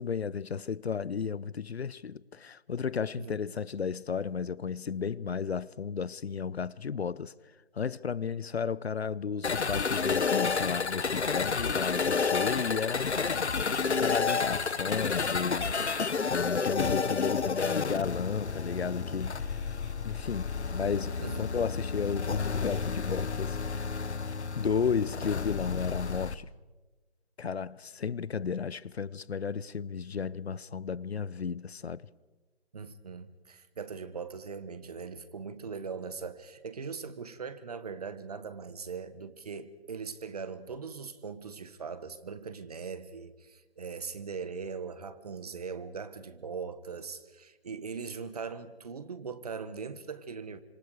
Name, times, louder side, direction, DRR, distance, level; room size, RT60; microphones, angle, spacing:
voice 1, 0.0-7.3 7.7-13.1 13.9-15.8 16.3-19.7 20.0-23.9 24.5-26.5 27.4-32.1, left 6 dB, 70° left, 0.8 m, -33 dB
sound 1, 9.4-26.3, left 5 dB, 85° left, 1.3 m, -30 dB
voice 2, 32.7-50.6, right 5 dB, 35° right, 1.4 m, -40 dB
29.0 x 26.5 x 4.9 m
figure-of-eight pair, 165°, 33 cm